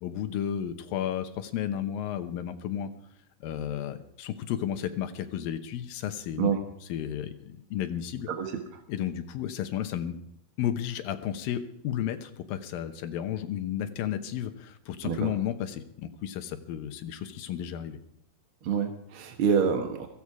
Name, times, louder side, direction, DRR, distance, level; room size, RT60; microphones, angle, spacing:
voice 1, 0.0-2.9 3.4-6.5 6.9-8.3 8.9-10.2 10.6-18.0, left 10 dB, 80° left, 9 dB, 2.8 m, -33 dB
voice 2, 18.6-20.1, right 6 dB, 55° right, 4 dB, 1.5 m, -27 dB
16.0 x 14.5 x 4.8 m, 0.76 s
omnidirectional pair, 4.0 m